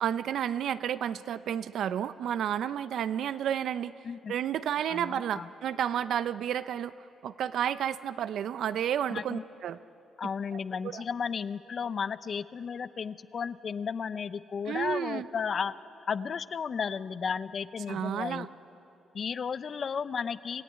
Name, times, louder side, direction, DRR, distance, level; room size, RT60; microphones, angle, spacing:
voice 1, 0.0-3.9 4.3-6.9 7.2-9.8 10.5-11.0 14.7-15.3 17.9-18.5, right 9 dB, 70° right, 14 dB, 0.6 m, -31 dB
voice 2, 4.9-5.5 9.1-9.4 10.2-15.7 16.1-18.5 19.1-20.6, left 6 dB, 50° left, 15 dB, 0.6 m, -34 dB
26.0 x 15.0 x 9.6 m, 2.8 s
cardioid pair, 90°, 0 cm